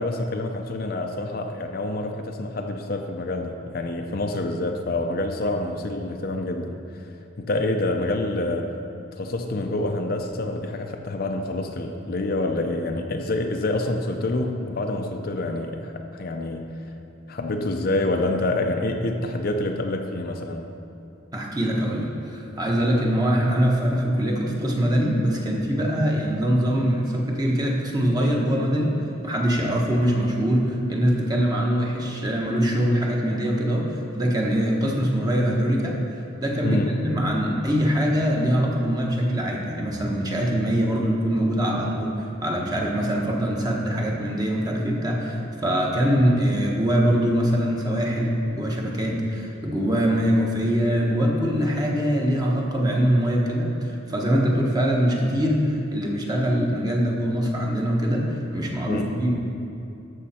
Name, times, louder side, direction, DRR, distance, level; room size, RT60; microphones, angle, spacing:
voice 1, 0.0-6.8 7.4-8.7 9.2-16.8 17.3-20.6 36.6-36.9 58.9-59.1, left 2 dB, 50° left, 4 dB, 0.6 m, -27 dB
voice 2, 21.3-29.0 29.2-36.0 36.4-59.3, equal, 20° right, -1 dB, 1.1 m, -23 dB
13.0 x 6.4 x 4.3 m, 2.7 s
head